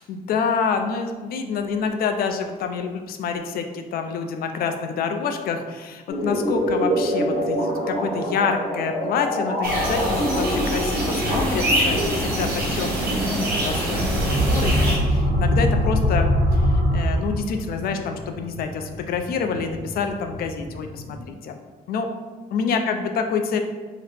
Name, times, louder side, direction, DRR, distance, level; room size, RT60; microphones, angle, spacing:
voice 1, 0.1-13.2 13.5-16.7 16.9-21.6 21.9-22.1 22.5-23.6, left 5 dB, 70° left, 6 dB, 0.4 m, -27 dB
sound 1, 6.1-21.3, equal, 55° left, 1.1 m, -29 dB
sound 2, 9.6-15.0, right 1 dB, 75° right, 1.0 m, -24 dB
sound 3, 14.0-17.7, equal, 45° right, 1.0 m, -21 dB
2.8 x 2.8 x 3.3 m, 1.3 s
cardioid pair, 115°, 16 cm